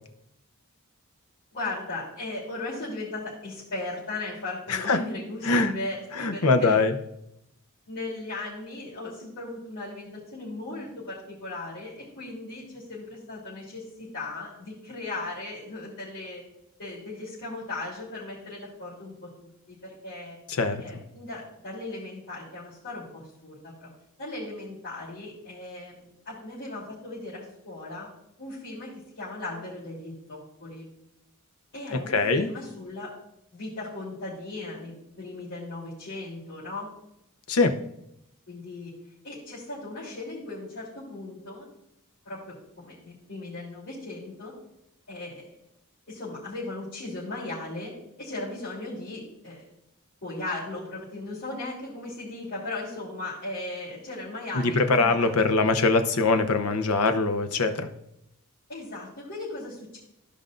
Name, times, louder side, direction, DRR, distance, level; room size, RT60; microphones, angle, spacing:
voice 1, 1.5-6.8 7.9-16.4 16.8-20.4 20.8-23.9 24.2-28.1 28.4-28.9 29.2-30.9 31.7-33.1 33.5-36.9 38.5-38.9 39.2-41.6 42.2-44.5 45.1-45.5 46.1-47.9 48.2-49.6 50.2-55.6 58.7-60.0, left 2 dB, 55° left, -10 dB, 3.3 m, -37 dB
voice 2, 6.2-6.9 20.6-20.8 31.9-32.5 37.5-37.7 54.8-57.9, left 3 dB, 75° left, 8 dB, 0.8 m, -22 dB
15.0 x 5.3 x 2.5 m, 0.82 s
head